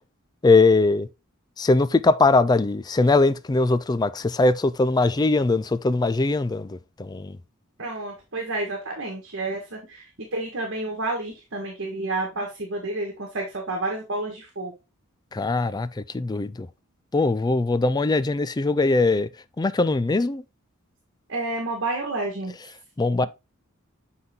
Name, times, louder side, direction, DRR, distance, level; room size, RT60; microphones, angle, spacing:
voice 1, 0.4-1.1 1.6-7.4 15.3-16.7 17.1-19.3 19.6-20.4 23.0-23.3, left 3 dB, 20° left, 0.3 m, -21 dB
voice 2, 7.8-14.7 21.3-22.5, right 2 dB, 60° right, 1.6 m, -30 dB
7.7 x 4.0 x 3.6 m
head